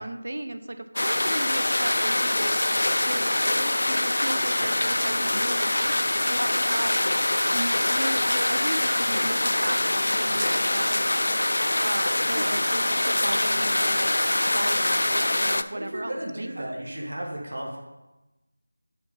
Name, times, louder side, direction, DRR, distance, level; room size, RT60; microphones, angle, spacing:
voice 1, 0.0-2.6 3.0-7.0 7.5-11.3 11.8-14.1 14.4-16.7, right 1 dB, 65° right, 9 dB, 0.6 m, -35 dB
sound 1, 1.0-15.6, left 1 dB, 75° left, 0.4 m, -24 dB
voice 2, 15.7-17.8, right 1 dB, 85° right, -2 dB, 1.9 m, -34 dB
6.7 x 6.7 x 4.0 m, 1.0 s
figure-of-eight pair, 175°, 0 cm